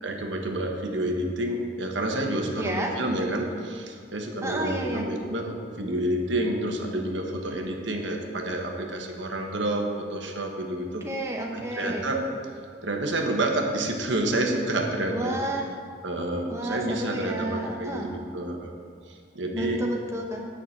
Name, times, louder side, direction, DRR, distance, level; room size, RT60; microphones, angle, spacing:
voice 1, 0.0-11.1 11.5-12.2 12.8-15.4 16.0-18.7 19.1-19.9, right 1 dB, 75° right, 2 dB, 1.4 m, -29 dB
voice 2, 2.6-2.9 4.4-5.1 11.0-12.1 15.1-15.7 16.5-18.1 19.5-20.5, right 1 dB, 15° right, 0 dB, 0.9 m, -31 dB
9.8 x 6.1 x 7.4 m, 2.3 s
head